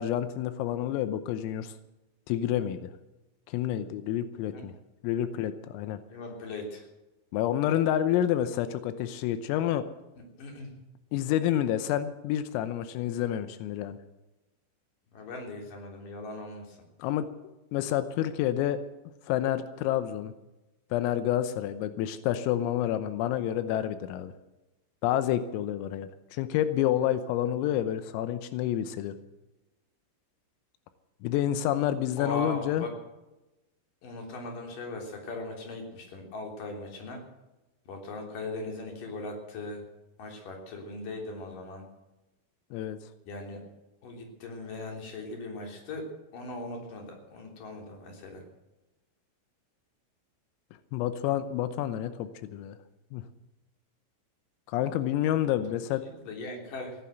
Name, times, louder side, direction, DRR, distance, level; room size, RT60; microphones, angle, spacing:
voice 1, 0.0-1.7 2.3-2.9 3.5-4.8 5.0-6.0 7.3-9.9 11.1-14.0 17.0-17.3 17.7-18.8 19.3-20.3 20.9-24.3 25.0-29.2 31.2-32.9 42.7-43.0 50.9-52.8 53.1-53.2 54.7-56.0, left 11 dB, 90° left, 11 dB, 3.6 m, -29 dB
voice 2, 6.1-6.8 10.2-10.7 15.1-16.8 32.2-32.9 34.0-37.2 37.9-39.8 40.2-41.8 43.3-43.6 44.0-46.1 46.3-48.4 56.0-57.0, left 2 dB, 45° left, 2 dB, 4.5 m, -39 dB
16.0 x 11.5 x 7.9 m, 1.0 s
omnidirectional pair, 5.9 m